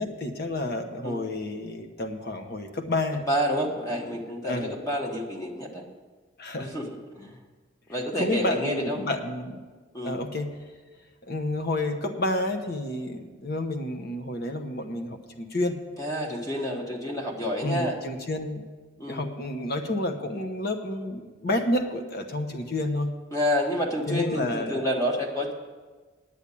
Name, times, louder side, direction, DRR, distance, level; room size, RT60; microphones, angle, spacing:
voice 1, 0.0-3.2 4.4-4.8 6.4-6.7 8.2-9.6 10.0-10.5 11.2-15.8 17.6-18.6 19.1-23.1 24.1-24.9, left 1 dB, 55° left, 6 dB, 1.0 m, -30 dB
voice 2, 3.3-5.8 6.6-6.9 7.1-7.4 7.9-9.1 9.9-10.2 16.0-18.0 19.0-19.2 23.3-25.5, equal, 15° left, 1 dB, 1.3 m, -29 dB
9.9 x 8.7 x 8.4 m, 1.4 s
head